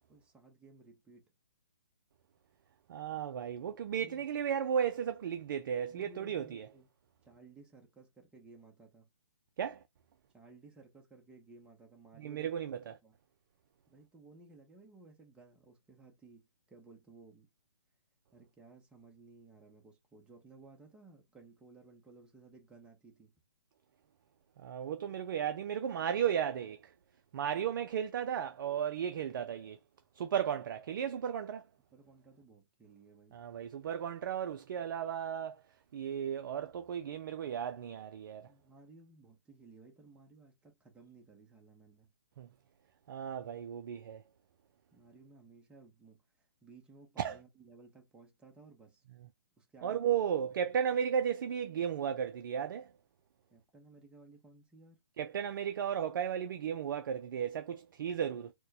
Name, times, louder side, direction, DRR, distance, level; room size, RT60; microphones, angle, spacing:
voice 1, 0.1-1.3 4.0-4.2 5.9-6.9 7.2-9.1 10.3-12.5 13.0-13.2 13.9-17.5 18.3-23.3 31.9-33.4 38.4-42.1 44.9-49.0 49.6-50.2 53.5-55.0, right 3 dB, 5° right, 0.7 m, -58 dB
voice 2, 2.9-6.7 9.6-9.8 12.2-12.9 24.6-26.9 27.3-29.8 30.1-31.7 33.3-35.6 35.9-38.5 42.4-42.5 43.1-44.2 47.2-47.4 49.8-52.9 55.2-58.5, right 8 dB, 50° right, 0.4 m, -35 dB
4.3 x 2.1 x 2.7 m
hypercardioid pair, 145°, 14 cm